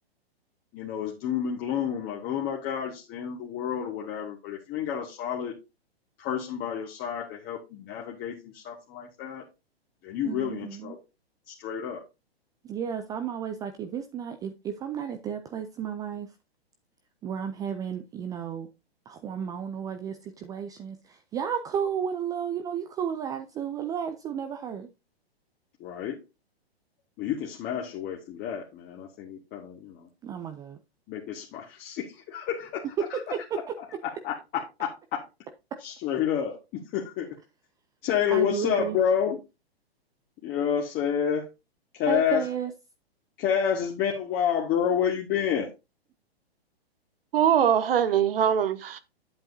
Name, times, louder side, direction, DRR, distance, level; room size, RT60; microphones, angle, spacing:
voice 1, 0.7-5.5 6.2-9.5 10.0-11.0 11.5-12.0 25.8-26.2 27.2-30.1 31.1-32.9 33.1-33.2 34.0-35.3 35.8-37.3 38.0-39.4 40.4-41.5 41.9-42.4 43.4-45.7, left 8 dB, 30° left, 1.6 m, -29 dB
voice 2, 10.2-11.0 12.6-16.3 17.2-18.7 19.1-24.9 30.2-30.8 33.3-33.4 38.3-39.0 42.1-42.7, right 8 dB, 10° right, 0.4 m, -33 dB
voice 3, 47.3-49.0, right 9 dB, 65° right, 1.0 m, -22 dB
9.1 x 7.9 x 2.7 m
hypercardioid pair, 120°, 31 cm